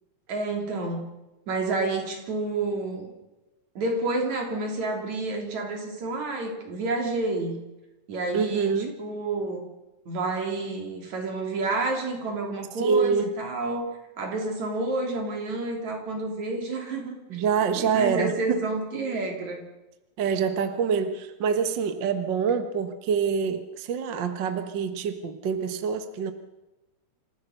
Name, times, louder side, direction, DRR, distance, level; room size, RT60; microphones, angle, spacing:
voice 1, 0.3-1.0 1.5-3.1 3.8-7.6 8.1-8.7 9.0-9.6 10.1-13.9 14.2-17.4 17.8-19.6, right 2 dB, 70° right, 2 dB, 4.7 m, -29 dB
voice 2, 8.3-8.9 12.8-13.3 17.3-18.7 20.2-26.3, right 6 dB, 50° right, 8 dB, 1.6 m, -26 dB
27.0 x 15.5 x 6.6 m, 1.0 s
omnidirectional pair, 3.3 m